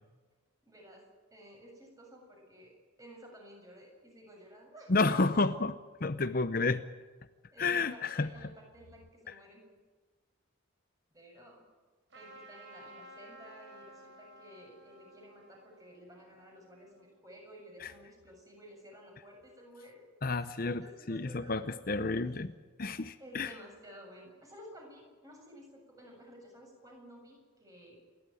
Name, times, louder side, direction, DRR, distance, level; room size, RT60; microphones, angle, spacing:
voice 1, 0.6-1.0 1.3-5.2 7.5-9.6 11.1-11.7 12.1-20.1 20.4-22.4 23.2-28.1, equal, 15° right, 0 dB, 7.3 m, -53 dB
voice 2, 4.9-5.8 6.0-6.8 7.6-8.3 9.3-9.4 17.8-17.9 20.2-22.5 22.8-23.5, left 3 dB, 45° left, 11 dB, 0.7 m, -30 dB
Trumpet, 12.1-17.2, right 1 dB, 60° right, 4.4 m, -55 dB
28.5 x 12.5 x 9.3 m, 1.4 s
head